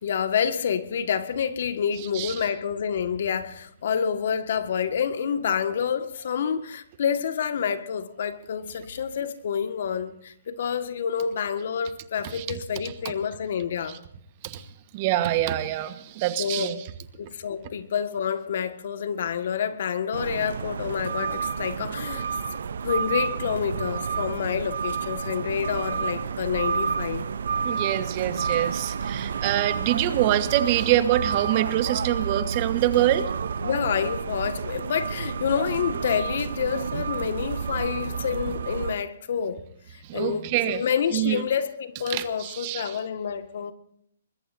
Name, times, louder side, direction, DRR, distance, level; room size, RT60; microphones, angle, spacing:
voice 1, 0.0-14.0 16.4-16.8 17.2-22.3 22.8-27.2 33.6-39.6 39.9-43.7, left 7 dB, 60° left, 1.7 m, -28 dB
voice 2, 14.9-16.8 27.6-33.3 40.0-40.8 41.1-41.4 42.1-43.0, right 13 dB, 35° right, 1.3 m, -25 dB
sound 1, 20.1-38.9, right 6 dB, 70° right, 0.7 m, -30 dB
24.0 x 21.5 x 2.7 m
hypercardioid pair, 145°, 0 cm